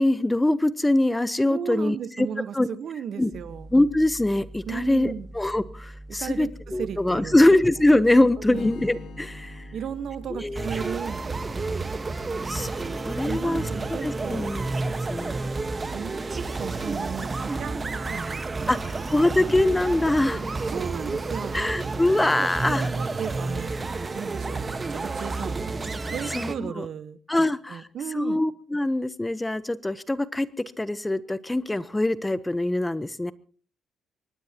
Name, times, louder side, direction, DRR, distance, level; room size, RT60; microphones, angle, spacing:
voice 1, 0.0-2.3 2.5-2.7 3.2-3.3 3.7-9.7 10.3-10.7 12.4-13.7 14.0-14.6 15.1-15.5 18.7-18.8 19.1-20.4 21.5-22.9 26.3-26.8 27.3-27.9 28.1-30.5 30.8-33.3, left 1 dB, 10° left, 16 dB, 0.9 m, -23 dB
voice 2, 1.5-3.7 4.7-5.3 6.1-7.4 8.5-8.7 9.7-11.5 13.2-14.5 15.9-19.1 20.7-21.5 22.4-23.8 24.1-24.6 24.9-25.6 26.1-28.4, right 8 dB, 60° right, 13 dB, 1.2 m, -35 dB
sound 1, 3.3-21.2, right 1 dB, 10° right, 1.9 m, -43 dB
Strum, 8.5-12.7, left 6 dB, 75° left, 2.3 m, -47 dB
sound 2, 10.5-26.5, right 3 dB, 30° right, 1.3 m, -30 dB
24.0 x 19.5 x 2.9 m, 0.42 s
cardioid pair, 90°, 0 cm